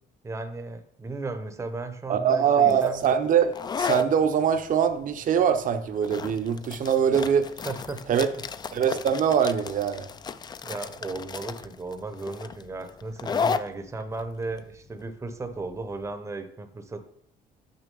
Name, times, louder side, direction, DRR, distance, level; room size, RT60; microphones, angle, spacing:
voice 1, 0.2-3.0 7.6-8.4 10.6-17.0, right 3 dB, 15° right, 8 dB, 0.8 m, -35 dB
voice 2, 2.1-7.5 8.1-8.3 8.7-10.1, right 8 dB, 50° right, 8 dB, 0.8 m, -23 dB
sound 1, 2.7-16.1, left 6 dB, 25° left, 0.4 m, -34 dB
6.4 x 5.9 x 5.4 m, 0.68 s
cardioid pair, 110°, 17 cm